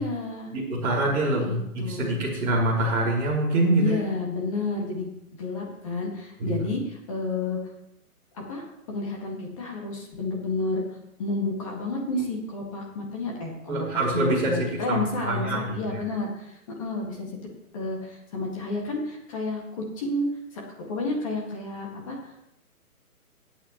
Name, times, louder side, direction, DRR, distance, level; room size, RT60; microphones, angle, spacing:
voice 1, 0.0-0.5 1.3-2.1 3.8-5.1 5.4-7.6 8.3-10.8 11.2-17.4 17.7-20.3 20.5-22.3, left 2 dB, 20° left, -1 dB, 1.9 m, -31 dB
voice 2, 0.5-3.9 6.4-6.7 13.7-16.0, right 1 dB, 10° right, -9 dB, 1.9 m, -25 dB
21.0 x 8.7 x 3.1 m, 0.80 s
hypercardioid pair, 170°, 45 cm